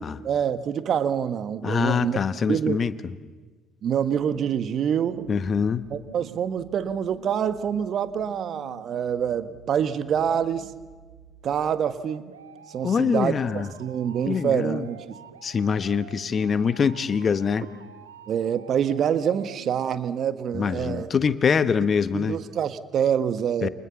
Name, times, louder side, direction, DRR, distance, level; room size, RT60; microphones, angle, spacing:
voice 1, 0.0-2.2 2.5-2.8 3.8-5.3 5.9-10.7 11.4-12.3 12.7-15.1 18.3-21.1 22.1-23.7, right 8 dB, 50° right, 11 dB, 1.6 m, -26 dB
voice 2, 1.6-3.1 5.3-5.8 12.8-13.7 14.3-14.9 15.4-17.6 20.5-22.4 23.6-23.7, left 6 dB, 40° left, 13 dB, 1.2 m, -24 dB
sound 1, 4.0-20.1, right 7 dB, 85° right, 1.4 m, -48 dB
29.0 x 28.0 x 7.2 m, 1.4 s
figure-of-eight pair, 55°, 0 cm